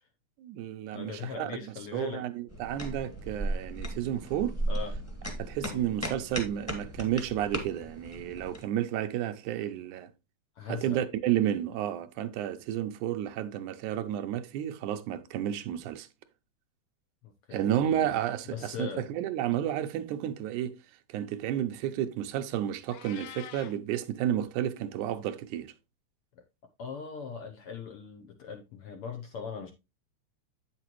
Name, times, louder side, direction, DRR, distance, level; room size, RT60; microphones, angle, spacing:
voice 1, 0.4-4.6 5.4-10.1 10.7-16.1 17.5-20.8 21.1-25.7, right 11 dB, 85° right, 2.2 m, -31 dB
voice 2, 0.9-2.2 4.7-4.9 5.6-5.9 10.6-11.0 17.2-18.1 18.5-19.0 26.8-29.7, left 6 dB, 70° left, 1.4 m, -40 dB
sound 1, 2.5-8.6, right 1 dB, 5° left, 1.2 m, -36 dB
Meow, 22.9-23.8, left 12 dB, 90° left, 2.1 m, -45 dB
8.7 x 6.7 x 3.0 m
omnidirectional pair, 3.4 m